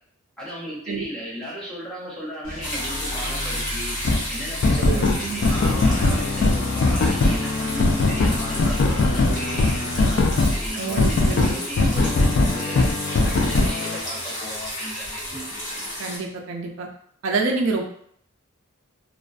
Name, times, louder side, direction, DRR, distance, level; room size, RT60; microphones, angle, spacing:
voice 1, 0.4-4.0 4.3-12.9 13.3-15.2, equal, 5° left, -6 dB, 0.6 m, -35 dB
sound 1, 2.4-10.7, left 1 dB, 85° left, 0.8 m, -35 dB
sound 2, 2.6-16.2, left 1 dB, 40° left, 1.0 m, -32 dB
sound 3, 4.0-4.2 4.6-10.6 11.0-14.0, left 2 dB, 60° left, 0.3 m, -20 dB
voice 2, 4.8-5.4 10.8-11.9 16.0-16.9 17.2-17.8, right 4 dB, 70° right, 2 dB, 0.4 m, -27 dB
2.4 x 2.1 x 2.3 m, 0.64 s
head